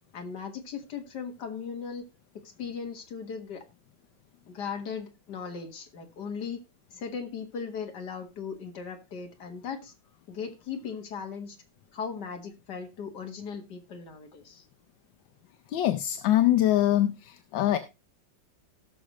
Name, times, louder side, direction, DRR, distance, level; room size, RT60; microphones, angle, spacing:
voice 1, 0.1-2.0 2.3-3.6 4.5-6.6 6.9-9.9 10.3-11.6 11.9-14.6, left 6 dB, 65° left, 2.1 m, -38 dB
voice 2, 15.7-17.8, left 13 dB, 80° left, 1.4 m, -23 dB
17.5 x 6.3 x 3.0 m
omnidirectional pair, 2.0 m